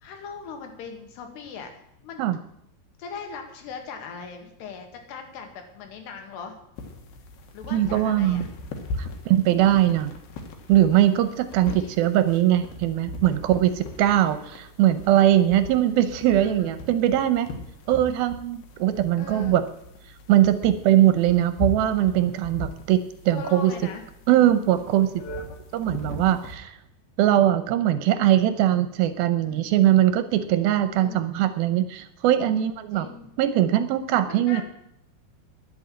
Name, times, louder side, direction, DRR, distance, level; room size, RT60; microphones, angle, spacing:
voice 1, 0.0-1.7 2.0-2.3 3.0-6.6 7.5-8.5 11.7-12.0 16.3-16.7 19.2-19.6 23.3-24.0 29.4-29.7 31.0-31.2 32.9-33.3 34.3-34.6, left 5 dB, 90° left, 5 dB, 3.9 m, -39 dB
sound 1, 6.8-26.6, left 2 dB, 70° left, 3.3 m, -39 dB
voice 2, 7.7-8.5 9.0-10.1 10.7-17.5 17.9-19.6 20.3-23.7 24.3-25.1 25.7-26.8 27.2-33.1 33.4-34.6, right 12 dB, 80° right, 12 dB, 2.3 m, -21 dB
11.0 x 8.9 x 8.7 m, 0.76 s
omnidirectional pair, 4.7 m